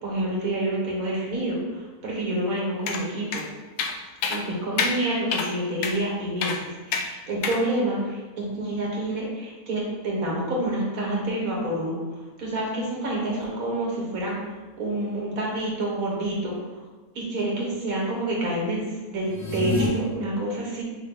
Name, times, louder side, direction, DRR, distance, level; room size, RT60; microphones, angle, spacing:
voice 1, 0.0-3.4 4.3-6.5 6.9-12.0 12.4-14.4 14.8-16.6 17.1-18.8 19.1-20.8, right 1 dB, 70° right, -3 dB, 1.6 m, -28 dB
sound 1, 2.9-3.0 3.3-3.4 3.8-4.0 4.2-4.4 4.8-4.9 5.3-5.5 5.8-6.0 6.4-6.6 6.9-7.1 7.4-7.6, left 5 dB, 90° left, 1.1 m, -26 dB
sound 2, 19.2-19.9, left 3 dB, 20° left, 0.5 m, -27 dB
5.5 x 2.3 x 3.9 m, 1.3 s
omnidirectional pair, 1.6 m